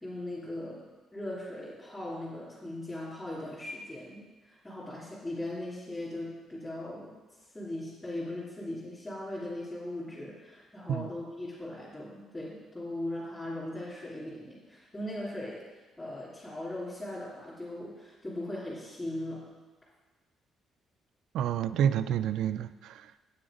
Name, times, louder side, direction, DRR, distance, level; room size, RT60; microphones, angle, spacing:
voice 1, 0.0-0.8 1.1-7.1 7.5-19.5, left 1 dB, 15° left, -9 dB, 3.0 m, -39 dB
voice 2, 21.3-23.2, right 9 dB, 75° right, 13 dB, 0.4 m, -29 dB
8.8 x 8.7 x 5.0 m, 1.3 s
cardioid pair, 120°, 0 cm